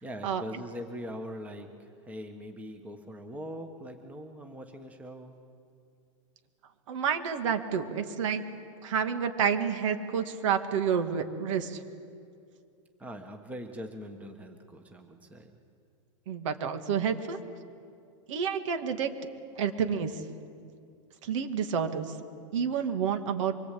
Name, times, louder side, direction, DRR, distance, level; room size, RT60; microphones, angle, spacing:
voice 1, 0.0-5.4 13.0-15.5, equal, 10° right, 5 dB, 1.4 m, -42 dB
voice 2, 6.9-8.4 8.8-11.8 16.3-17.4 18.3-19.1 19.6-20.2 21.2-22.1 22.5-23.5, right 7 dB, 65° right, 7 dB, 2.2 m, -29 dB
24.5 x 23.0 x 8.5 m, 2.4 s
supercardioid pair, 150°, 17 cm